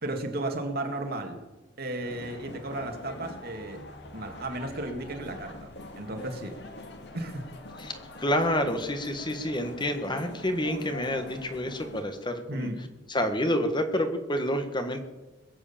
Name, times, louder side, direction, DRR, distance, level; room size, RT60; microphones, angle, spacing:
voice 1, 0.0-1.4 1.8-3.8 4.1-6.6 7.1-7.5 12.5-12.8, right 1 dB, 55° right, 4 dB, 2.2 m, -34 dB
sound 1, 2.0-12.0, left 2 dB, 65° left, 1.9 m, -44 dB
voice 2, 7.8-12.7 13.1-15.0, left 1 dB, 25° left, 7 dB, 1.5 m, -28 dB
21.5 x 8.1 x 7.3 m, 1.1 s
head